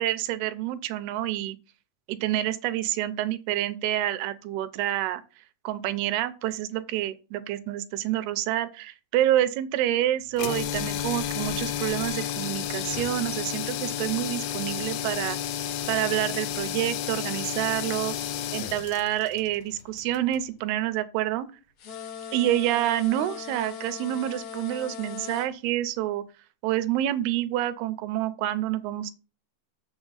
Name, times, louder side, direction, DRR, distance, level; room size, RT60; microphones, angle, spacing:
voice 1, 0.0-1.6 2.1-5.2 5.6-15.4 15.9-18.2 18.5-21.5 22.3-26.2 26.6-29.1, right 13 dB, 80° right, 2.5 m, -28 dB
sound 1, 10.3-20.5, left 10 dB, 75° left, 2.7 m, -32 dB
sound 2, 21.8-25.5, left 7 dB, 55° left, 1.9 m, -39 dB
7.2 x 7.1 x 4.0 m
omnidirectional pair, 4.9 m